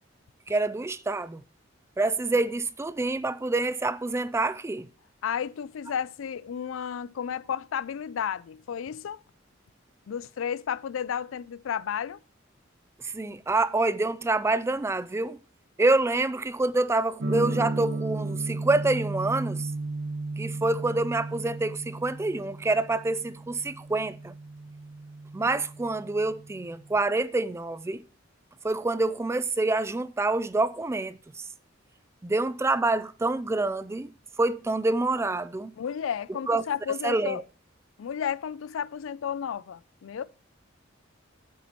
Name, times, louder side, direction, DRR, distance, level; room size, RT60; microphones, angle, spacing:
voice 1, 0.5-1.4 2.0-4.9 13.0-15.4 15.8-19.7 20.4-24.3 25.3-28.0 28.6-31.2 32.2-34.1 34.4-35.7 36.5-36.6 37.0-37.4, right 2 dB, 15° right, 0.3 m, -27 dB
voice 2, 5.2-9.2 10.1-12.2 35.8-37.4 38.0-40.2, left 8 dB, 85° left, 0.4 m, -32 dB
sound 1, 17.2-27.0, right 2 dB, 75° right, 1.7 m, -35 dB
8.3 x 7.1 x 3.0 m
head